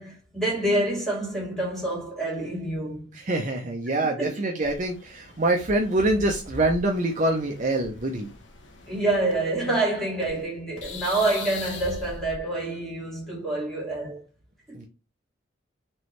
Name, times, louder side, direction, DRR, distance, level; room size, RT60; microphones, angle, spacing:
voice 1, 0.0-3.1 4.2-4.3 8.9-14.2 14.7-14.8, right 2 dB, ahead, 2.2 m, -27 dB
voice 2, 3.1-8.3 14.7-14.8, right 2 dB, 40° right, 0.7 m, -25 dB
sound 1, 4.6-10.5 10.8-12.4, left 3 dB, 70° left, 0.9 m, -41 dB
4.5 x 3.2 x 3.2 m
head